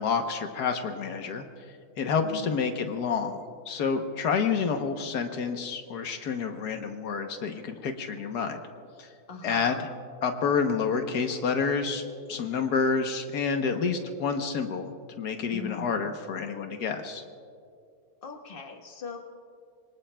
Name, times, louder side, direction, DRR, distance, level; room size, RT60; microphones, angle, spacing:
voice 1, 0.0-1.4 2.0-3.4 3.7-8.6 9.0-9.1 9.4-9.9 10.2-12.0 12.3-14.9 15.2-17.2, left 5 dB, 80° left, 5 dB, 1.5 m, -28 dB
voice 2, 9.3-9.8 15.5-16.2 18.2-19.2, left 4 dB, 35° left, 2 dB, 1.5 m, -40 dB
26.5 x 23.5 x 2.3 m, 2.4 s
omnidirectional pair, 1.7 m